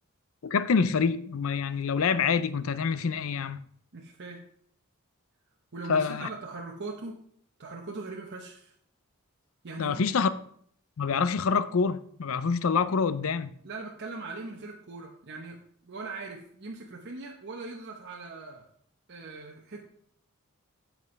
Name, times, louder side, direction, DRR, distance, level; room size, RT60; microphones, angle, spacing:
voice 1, 0.4-3.6 5.9-6.3 9.8-10.3 11.0-13.5, left 5 dB, 65° left, 0.5 m, -26 dB
voice 2, 3.9-4.4 5.7-7.2 7.6-8.7 9.6-10.2 13.6-18.7 19.1-19.8, right 3 dB, 55° right, 0.9 m, -40 dB
9.2 x 7.5 x 3.3 m
head